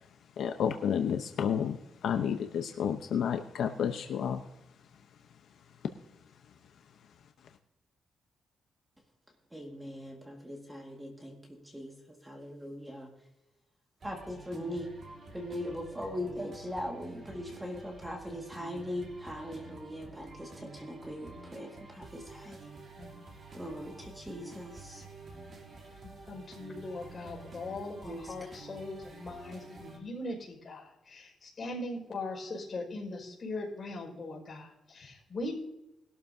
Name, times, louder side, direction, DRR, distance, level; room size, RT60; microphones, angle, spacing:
voice 1, 0.4-4.4, left 8 dB, 70° left, 5 dB, 0.8 m, -31 dB
voice 2, 9.5-12.0 12.2-13.1 14.0-14.9 15.3-22.6 23.5-25.0 28.0-28.5, equal, 5° right, 1 dB, 1.9 m, -40 dB
sound 1, 14.0-30.0, right 3 dB, 45° right, 3.1 m, -50 dB
voice 3, 26.3-35.6, left 2 dB, 35° left, 0 dB, 5.3 m, -40 dB
21.0 x 12.5 x 2.7 m, 0.92 s
wide cardioid pair, 155°, 0 cm